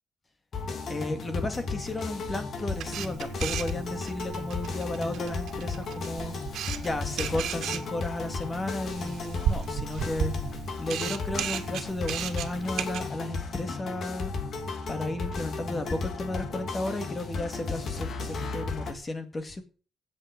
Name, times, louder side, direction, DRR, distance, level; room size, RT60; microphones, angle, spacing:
sound 1, 0.5-18.9, left 4 dB, 50° left, 2.5 m, -35 dB
voice 1, 0.9-6.4 6.8-14.3 14.9-19.6, left 2 dB, 25° left, 2.2 m, -34 dB
Camera, 2.7-13.1, right 9 dB, 75° right, 1.9 m, -35 dB
16.5 x 8.0 x 5.2 m
cardioid pair, 120°, 0 cm